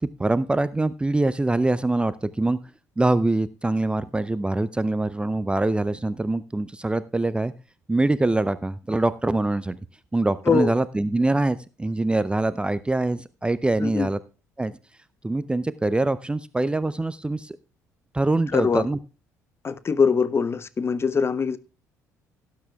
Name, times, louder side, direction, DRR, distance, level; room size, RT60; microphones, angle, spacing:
voice 1, 0.0-2.6 3.0-7.5 7.9-9.8 10.1-14.2 14.6-14.8 15.2-17.6 18.1-19.0, right 2 dB, 10° right, 0.5 m, -24 dB
voice 2, 13.8-14.1 18.5-18.9 19.6-21.6, left 5 dB, 30° left, 0.7 m, -22 dB
18.0 x 9.5 x 2.3 m
figure-of-eight pair, 50°, 9 cm